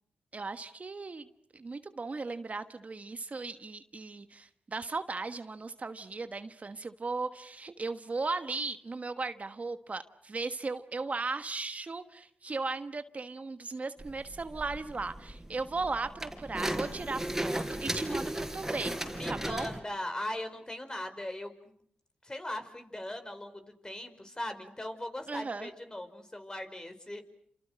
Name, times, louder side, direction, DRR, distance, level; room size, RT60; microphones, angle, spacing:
voice 1, 0.3-1.3 1.5-18.9 19.3-19.7 25.3-25.7, right 3 dB, 45° right, 10 dB, 1.3 m, -37 dB
sound 1, 14.0-19.8, right 1 dB, 10° right, 5.5 m, -36 dB
voice 2, 17.8-18.3 19.1-21.5 22.2-27.2, left 1 dB, 20° left, 8 dB, 5.1 m, -39 dB
28.5 x 27.5 x 6.4 m, 0.65 s
supercardioid pair, 45°, 3 cm